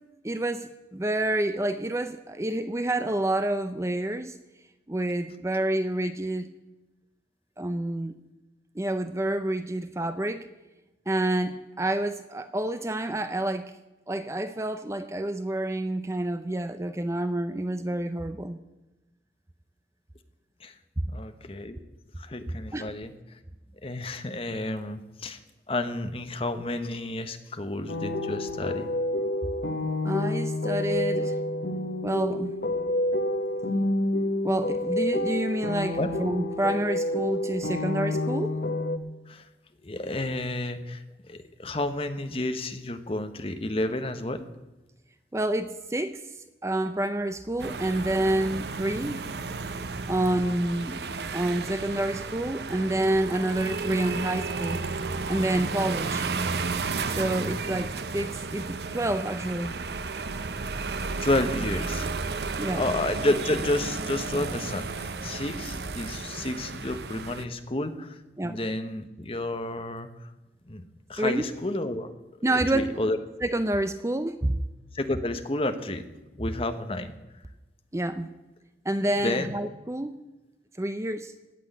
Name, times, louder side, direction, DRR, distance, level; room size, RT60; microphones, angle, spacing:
voice 1, 0.2-4.4 4.9-6.5 7.6-8.2 8.7-10.5 11.1-13.7 14.1-18.6 22.7-22.9 30.0-31.3 32.0-32.6 34.4-38.6 45.3-46.2 46.6-49.2 50.1-51.0 51.3-54.9 55.3-56.3 57.1-59.8 62.6-62.9 66.0-66.1 68.4-68.6 71.2-71.5 72.4-73.0 73.4-74.6 77.9-78.3 78.8-80.2 80.8-81.3, right 1 dB, 15° right, 10 dB, 0.5 m, -28 dB
voice 2, 21.1-21.8 22.2-23.1 23.8-25.4 25.7-28.9 36.0-36.1 39.3-39.4 39.8-44.5 61.2-62.1 62.7-70.3 70.7-70.8 71.1-72.1 72.5-73.2 74.9-76.1 76.4-77.2 79.2-79.5, left 1 dB, 35° left, 8 dB, 1.1 m, -31 dB
sound 1, 27.9-39.0, left 1 dB, 70° left, 1.1 m, -28 dB
sound 2, 47.6-67.4, right 4 dB, 70° right, 0.8 m, -33 dB
17.0 x 6.3 x 9.9 m, 1.0 s
head